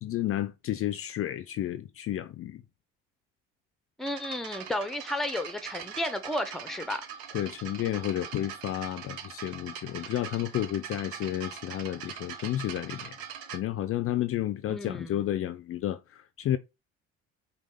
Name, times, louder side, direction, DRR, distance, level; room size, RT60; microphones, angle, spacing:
voice 1, 0.0-2.6 7.3-13.2 13.5-16.6, left 12 dB, 45° left, 0.4 m, -31 dB
voice 2, 4.0-7.0 14.7-15.3, left 1 dB, ahead, 0.7 m, -33 dB
sound 1, 4.0-13.6, right 8 dB, 80° right, 0.8 m, -42 dB
5.1 x 2.3 x 3.7 m
hypercardioid pair, 60°, 33 cm